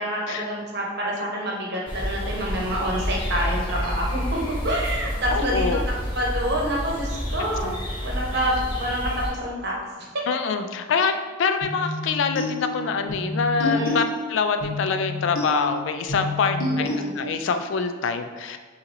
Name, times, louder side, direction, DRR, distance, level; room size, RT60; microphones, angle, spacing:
voice 1, 0.0-4.2 4.6-5.7 6.1-7.7 8.0-9.7 13.6-14.0 16.5-17.2, equal, 50° right, -3 dB, 1.0 m, -27 dB
sound 1, 1.9-9.3, equal, 20° left, 0.9 m, -29 dB
voice 2, 5.3-5.8 7.6-7.7 10.3-11.1 11.4-14.0 14.3-18.6, left 5 dB, 60° left, 8 dB, 0.3 m, -25 dB
sound 2, 11.6-17.6, left 2 dB, 85° left, 1.1 m, -30 dB
6.6 x 2.9 x 2.6 m, 1.4 s
head